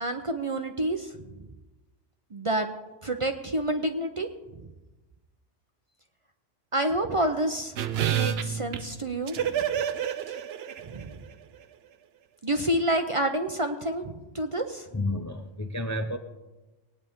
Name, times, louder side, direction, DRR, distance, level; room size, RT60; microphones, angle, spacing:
voice 1, 0.0-1.1 2.3-2.7 3.0-4.3 6.7-7.7 8.0-9.5 10.9-11.1 12.4-14.8, right 1 dB, 35° right, 5 dB, 0.6 m, -28 dB
sound 1, 7.8-11.3 11.5-11.6, right 9 dB, 65° right, 0.8 m, -29 dB
voice 2, 14.9-16.2, left 1 dB, 20° left, 5 dB, 0.4 m, -30 dB
19.5 x 9.4 x 3.6 m, 1.1 s
omnidirectional pair, 1.2 m